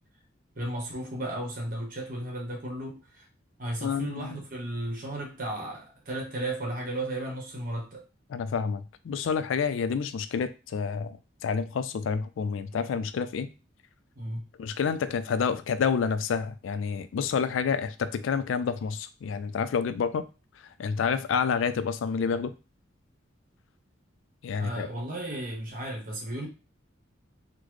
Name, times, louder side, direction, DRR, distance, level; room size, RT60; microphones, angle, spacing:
voice 1, 0.6-3.2 3.6-8.0 14.2-14.4 24.6-26.5, right 1 dB, 45° right, 1.1 m, -34 dB
voice 2, 3.8-4.4 8.3-11.2 11.4-13.5 14.6-20.2 20.8-22.5 24.4-24.9, left 6 dB, 80° left, 0.3 m, -28 dB
3.9 x 2.1 x 3.1 m
head